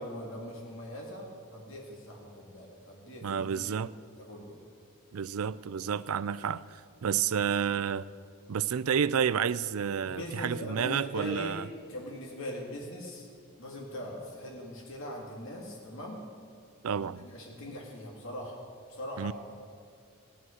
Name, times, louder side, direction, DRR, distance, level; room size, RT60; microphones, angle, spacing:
voice 1, 0.0-3.6 4.2-4.6 10.0-11.6 11.9-13.3 13.6-16.3 17.0-18.6 18.9-19.3, equal, 60° left, 2.0 m, -41 dB
voice 2, 3.2-3.9 5.1-8.1 8.5-11.7 16.8-17.3 19.2-19.3, right 7 dB, 75° right, 0.4 m, -30 dB
14.5 x 11.0 x 6.4 m
head